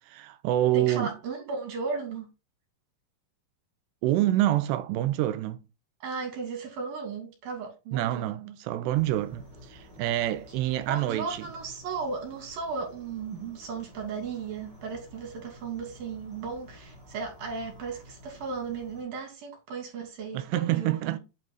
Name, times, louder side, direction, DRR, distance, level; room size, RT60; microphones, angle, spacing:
voice 1, 0.1-1.1 4.0-5.6 7.9-11.5 20.3-21.2, right 14 dB, 80° right, 2.7 m, -27 dB
voice 2, 0.7-2.3 6.0-8.6 10.9-21.2, right 5 dB, 60° right, 4.2 m, -35 dB
sound 1, 8.9-19.0, left 1 dB, 15° right, 3.3 m, -51 dB
9.2 x 4.7 x 4.0 m
omnidirectional pair, 5.0 m